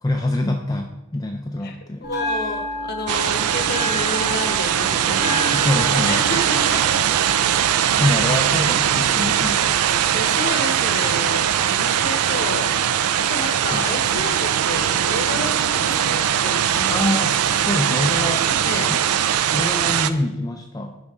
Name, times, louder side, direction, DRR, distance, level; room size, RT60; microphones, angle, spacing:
voice 1, 0.0-2.0 5.5-6.3 8.0-10.1 13.7-13.9 16.9-18.5 18.9-19.0 19.5-21.0, left 1 dB, 15° left, 3 dB, 0.4 m, -25 dB
voice 2, 1.6-5.6 6.0-7.1 10.1-12.7 13.1-17.2 18.2-19.0, left 2 dB, 45° left, 6 dB, 0.8 m, -31 dB
Bell, 2.0-10.0, left 1 dB, 20° right, 1.3 m, -32 dB
sound 1, 3.1-20.1, right 9 dB, 85° right, 0.4 m, -20 dB
11.5 x 4.1 x 3.5 m, 0.96 s
head